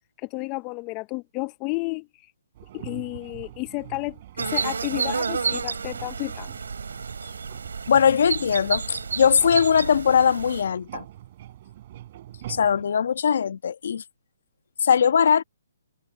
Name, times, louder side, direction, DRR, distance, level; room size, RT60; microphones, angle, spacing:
voice 1, 0.2-2.1 2.7-6.5, left 25 dB, 25° left, 1.0 m, -32 dB
sound 1, 2.5-12.8, right 13 dB, 45° right, 7.1 m, -43 dB
sound 2, 4.4-10.6, right 5 dB, 80° right, 3.4 m, -30 dB
voice 2, 7.9-11.1 12.5-14.0 14.8-15.4, left 7 dB, 65° left, 1.7 m, -20 dB
hypercardioid pair, 145°, 0 cm